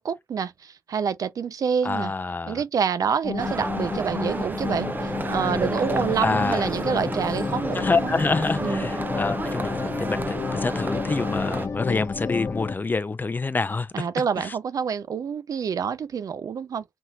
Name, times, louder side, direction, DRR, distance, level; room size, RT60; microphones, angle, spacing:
voice 1, 0.0-2.1 2.5-8.1 8.6-8.9 13.9-16.8, right 7 dB, 80° right, 0.4 m, -27 dB
voice 2, 1.8-2.6 6.2-6.7 7.7-14.1 14.4-14.6, left 3 dB, 30° left, 0.4 m, -27 dB
sound 1, 3.2-12.7, left 5 dB, 55° left, 0.7 m, -30 dB
sound 2, 3.4-11.7, right 2 dB, 30° right, 0.5 m, -32 dB
3.4 x 2.8 x 2.2 m
wide cardioid pair, 85°, 6 cm